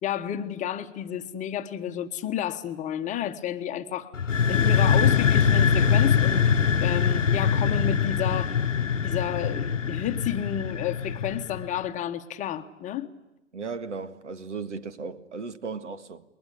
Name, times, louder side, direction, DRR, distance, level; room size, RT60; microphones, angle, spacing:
voice 1, 0.0-4.1 4.5-8.6 9.0-13.1, left 10 dB, 20° left, 1.2 m, -31 dB
sound 1, 4.1-11.8, left 6 dB, 80° left, 1.0 m, -23 dB
voice 2, 13.5-16.2, right 4 dB, 70° right, 1.9 m, -36 dB
29.5 x 21.5 x 8.6 m
figure-of-eight pair, 110°, 37 cm